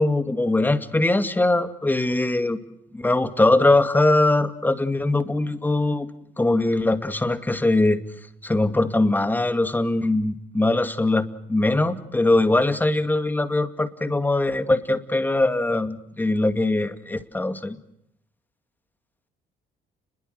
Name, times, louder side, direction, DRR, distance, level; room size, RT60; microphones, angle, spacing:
voice 1, 0.0-2.6 2.9-6.1 6.4-8.0 8.4-17.8, left 2 dB, 10° left, 10 dB, 2.3 m, -21 dB
29.5 x 22.0 x 6.6 m, 0.75 s
cardioid pair, 110°, 17 cm